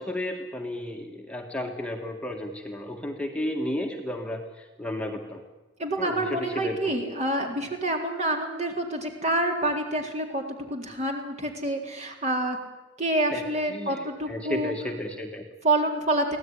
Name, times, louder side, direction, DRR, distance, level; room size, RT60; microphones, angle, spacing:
voice 1, 0.0-5.4 6.0-7.0 13.3-13.4 13.7-15.4, left 1 dB, 5° left, 1 dB, 1.7 m, -33 dB
voice 2, 5.8-10.4 10.7-12.6 13.0-14.7 15.6-16.4, right 1 dB, 35° right, 2 dB, 3.9 m, -27 dB
24.0 x 17.0 x 9.9 m, 1.1 s
head